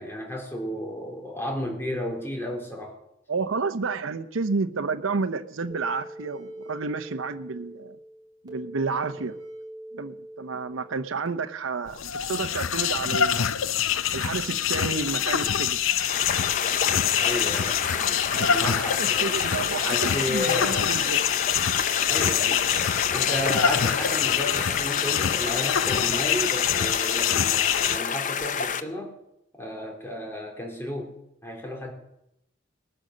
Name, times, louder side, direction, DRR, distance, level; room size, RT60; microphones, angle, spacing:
voice 1, 0.0-3.0 17.2-17.7 18.0-19.3 19.8-20.8 22.1-22.7 23.1-29.1 29.6-31.2 31.4-31.9, left 1 dB, 10° left, 0 dB, 3.5 m, -33 dB
voice 2, 3.3-8.0 8.4-9.4 9.9-13.5 14.1-15.8 18.3-21.4, right 4 dB, 85° right, 8 dB, 0.8 m, -30 dB
sound 1, 5.7-11.3, right 1 dB, 20° right, 2.7 m, -42 dB
sound 2, 11.9-28.0, left 9 dB, 85° left, 0.6 m, -25 dB
sound 3, 15.9-28.8, left 6 dB, 40° left, 0.6 m, -29 dB
20.0 x 8.9 x 6.5 m, 0.81 s
head